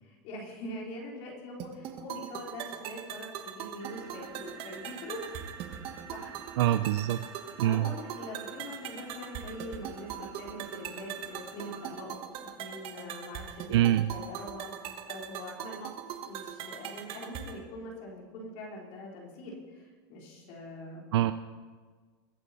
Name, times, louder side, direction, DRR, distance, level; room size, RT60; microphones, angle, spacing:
voice 1, 0.0-5.3 6.1-6.4 7.6-13.8 14.1-15.9 16.2-21.1, left 1 dB, 50° left, -2 dB, 3.8 m, -43 dB
sound 1, 1.6-17.6, right 9 dB, 40° right, 1.2 m, -41 dB
sound 2, 3.8-12.0, right 5 dB, 20° right, 2.1 m, -51 dB
voice 2, 6.6-7.2 7.6-7.9 13.7-14.1 21.1-21.3, right 13 dB, 85° right, 11 dB, 0.5 m, -24 dB
21.5 x 8.5 x 4.2 m, 1.5 s
supercardioid pair, 140°, 14 cm